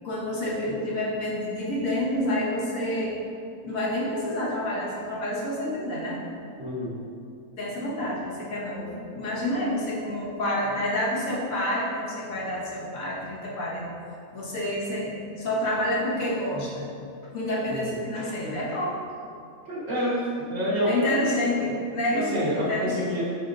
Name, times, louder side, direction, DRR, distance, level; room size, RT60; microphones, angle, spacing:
voice 1, 0.0-3.2 3.6-6.2 7.6-13.8 14.3-16.9 17.3-19.0 20.9-23.0, left 1 dB, 75° left, -6 dB, 1.5 m, -28 dB
voice 2, 6.6-6.9 17.7-17.9 19.7-20.2 20.5-20.9 22.1-23.2, equal, 65° right, -11 dB, 1.7 m, -27 dB
9.9 x 4.2 x 2.6 m, 2.4 s
omnidirectional pair, 1.5 m